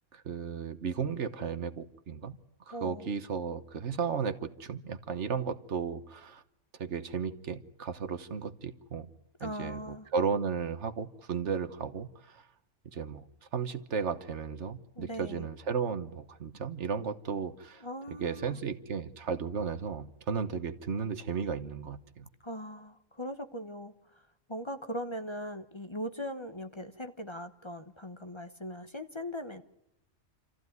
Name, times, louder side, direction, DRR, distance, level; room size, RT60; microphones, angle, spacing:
voice 1, 0.1-2.4 2.7-6.4 6.8-9.1 9.4-12.5 12.9-13.2 13.5-22.3, right 6 dB, 65° right, 11 dB, 1.4 m, -34 dB
voice 2, 2.7-3.0 9.4-10.1 15.0-15.5 17.8-18.6 22.4-23.9 24.5-29.6, equal, 25° left, 8 dB, 1.0 m, -40 dB
27.5 x 14.5 x 9.5 m, 0.87 s
omnidirectional pair, 1.3 m